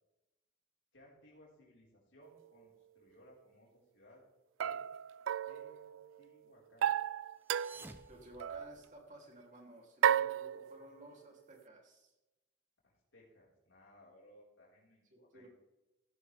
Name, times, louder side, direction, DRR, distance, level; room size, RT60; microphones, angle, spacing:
voice 1, 0.9-4.2 4.6-4.8 5.4-6.9 8.3-8.4 12.8-15.5, left 1 dB, 80° left, -5 dB, 4.6 m, -62 dB
sound 1, 2.2-2.3 4.6-6.2 6.8-8.0 8.4-8.8 10.0-11.1, right 9 dB, 85° right, 0.3 m, -34 dB
sound 2, 7.3-9.2, right 2 dB, 10° right, 0.6 m, -55 dB
voice 2, 8.1-12.1 15.1-15.5, right 1 dB, 40° right, 0 dB, 3.1 m, -55 dB
15.5 x 11.5 x 3.5 m, 1.0 s
head